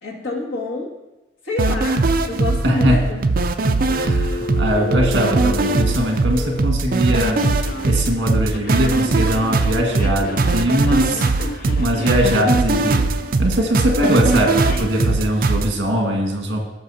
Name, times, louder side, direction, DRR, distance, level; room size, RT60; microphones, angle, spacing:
voice 1, 0.0-0.9 1.4-3.2, left 3 dB, 80° left, -2 dB, 2.0 m, -27 dB
sound 1, 1.6-15.7, right 3 dB, 45° right, 0.4 m, -20 dB
voice 2, 2.6-3.0 3.9-7.4 7.9-13.0 13.4-16.6, equal, 65° right, 1 dB, 1.7 m, -21 dB
Telephone, 3.9-6.7 7.4-8.0 8.5-12.3 14.3-14.9, left 1 dB, 50° left, 0.6 m, -31 dB
16.0 x 6.3 x 2.8 m, 1.1 s
head